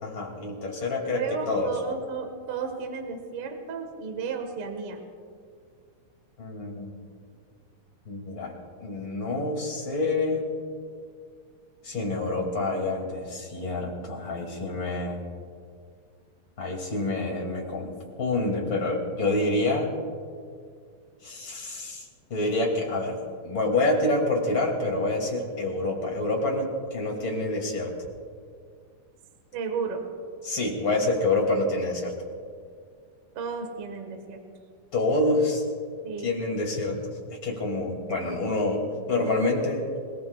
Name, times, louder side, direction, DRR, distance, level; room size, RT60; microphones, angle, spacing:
voice 1, 0.0-1.7 6.4-6.9 8.1-8.5 8.8-10.5 11.8-15.2 16.6-19.9 21.2-22.0 22.3-23.2 23.4-27.9 30.4-32.1 34.9-35.6 36.2-37.0 37.4-39.9, left 2 dB, 35° left, -1 dB, 2.9 m, -27 dB
voice 2, 1.1-5.0 29.5-30.0 33.3-34.4 36.0-36.3, right 5 dB, 50° right, 4 dB, 2.1 m, -33 dB
27.5 x 19.0 x 2.4 m, 2.1 s
omnidirectional pair, 4.0 m